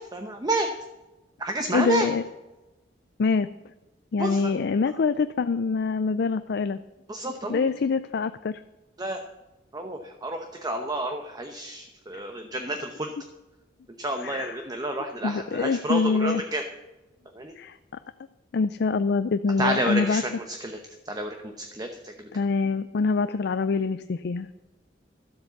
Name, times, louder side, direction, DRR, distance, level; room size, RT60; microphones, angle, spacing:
voice 1, 0.1-0.7 1.4-2.1 4.2-4.5 7.1-7.6 9.0-9.2 9.7-13.1 14.0-16.6 17.3-17.5 19.6-20.8 21.0-22.3, right 1 dB, 20° right, 4 dB, 0.9 m, -30 dB
voice 2, 1.7-2.2 3.2-3.5 4.1-6.8 7.5-8.5 14.2-14.6 15.2-16.4 17.6-17.8 18.5-20.2 22.3-24.5, left 4 dB, 65° left, 11 dB, 0.4 m, -25 dB
12.5 x 7.9 x 7.0 m, 1.1 s
head